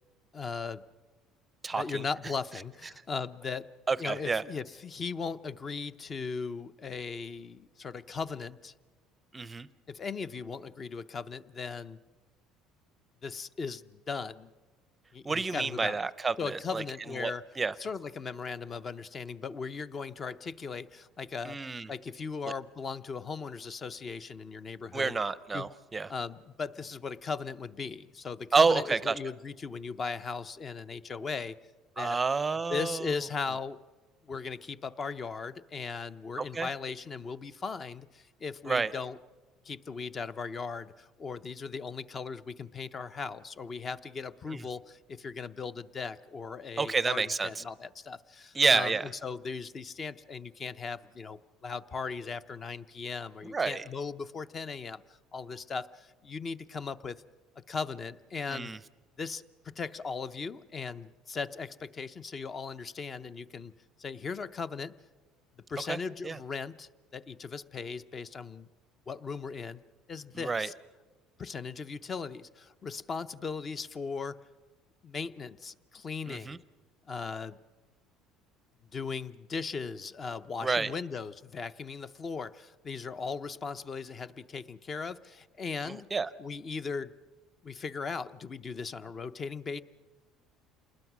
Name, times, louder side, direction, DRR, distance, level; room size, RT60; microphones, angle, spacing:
voice 1, 0.3-0.8 1.8-3.7 4.0-8.7 9.9-12.0 13.2-14.5 15.1-16.0 16.4-17.4 17.8-21.6 21.9-25.2 25.5-25.7 26.1-31.6 32.0-32.2 32.7-33.8 34.2-39.2 39.6-55.0 55.3-57.2 57.7-58.7 59.2-63.7 64.0-64.9 65.7-68.7 69.1-69.8 70.1-70.7 71.4-74.4 75.0-76.6 77.1-77.6 78.9-86.1 86.4-87.1 87.6-89.8, left 5 dB, 25° left, 15 dB, 0.7 m, -38 dB
voice 2, 1.6-2.0 3.9-4.4 9.3-9.7 15.2-17.7 21.4-21.9 24.9-26.1 28.5-29.1 32.0-33.2 36.4-36.7 38.7-38.9 44.5-44.6 46.8-47.6 48.5-49.1 53.5-53.8 58.5-58.8 65.9-66.0 66.2-66.4 70.3-70.7 76.3-76.6 80.6-80.9 85.8-86.3, right 4 dB, 15° right, 17 dB, 0.6 m, -29 dB
28.0 x 20.5 x 6.1 m, 1.3 s
cardioid pair, 140°, 0 cm